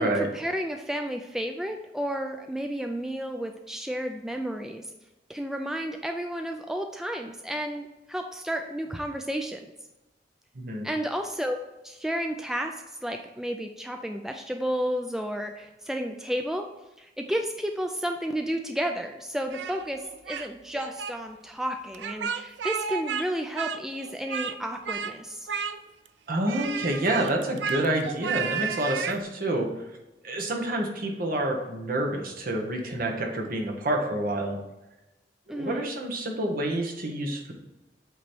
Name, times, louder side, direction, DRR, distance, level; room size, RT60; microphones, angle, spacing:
voice 1, 0.0-4.9 5.3-9.6 10.8-11.6 11.8-12.8 13.0-16.7 17.0-25.5 35.5-35.9, equal, 5° right, 4 dB, 0.3 m, -32 dB
voice 2, 10.5-10.9 26.3-29.7 30.2-34.6 35.5-37.5, right 1 dB, 55° right, 1 dB, 1.2 m, -28 dB
Speech, 19.5-20.5 20.7-21.1 21.9-23.3 23.5-24.6 24.9-25.1 25.5-26.1 26.5-29.2, right 7 dB, 85° right, 0.5 m, -32 dB
8.1 x 3.1 x 4.4 m, 1.0 s
head